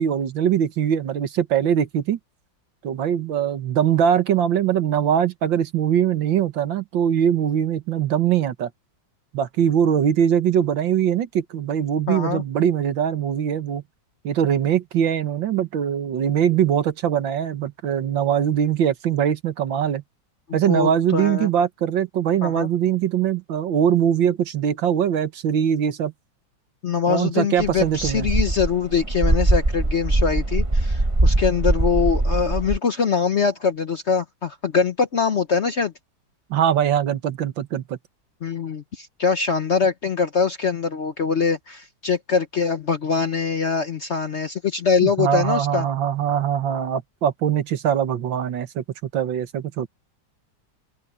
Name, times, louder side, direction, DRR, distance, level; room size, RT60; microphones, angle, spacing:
voice 1, 0.0-2.2 2.8-8.7 9.3-13.8 14.2-20.0 20.5-26.1 27.1-28.3 36.5-38.0 45.0-49.9, right 9 dB, 75° right, 1.9 m, -22 dB
voice 2, 12.1-12.4 20.5-21.5 22.4-22.7 26.8-35.9 38.4-45.9, left 5 dB, 50° left, 0.9 m, -23 dB
sound 1, 27.6-32.8, right 2 dB, 20° right, 1.4 m, -21 dB
open air
omnidirectional pair, 2.1 m